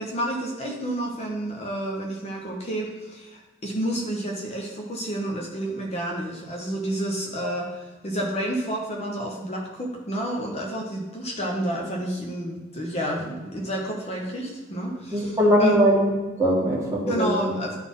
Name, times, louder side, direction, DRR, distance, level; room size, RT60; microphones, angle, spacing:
voice 1, 0.0-15.8 17.1-17.8, equal, 35° left, 0 dB, 1.0 m, -30 dB
voice 2, 15.1-16.1 16.4-17.5, equal, 15° right, -4 dB, 1.8 m, -20 dB
11.5 x 4.2 x 3.7 m, 1.2 s
head